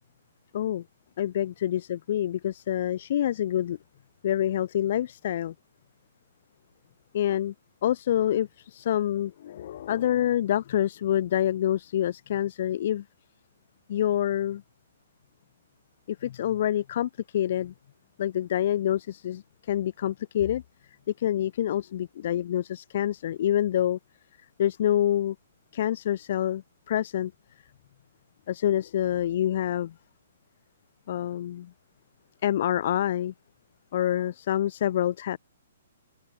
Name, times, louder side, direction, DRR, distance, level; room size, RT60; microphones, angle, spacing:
voice 1, 1.2-3.8 4.2-5.5 7.1-7.5 7.8-13.0 13.9-14.6 16.1-17.7 18.2-20.6 21.2-24.0 24.6-25.4 25.7-27.3 28.5-29.9 31.1-31.7 32.4-33.3 33.9-35.4, left 11 dB, 45° left, 0.5 m, -27 dB
open air
hypercardioid pair, 170°, 0 cm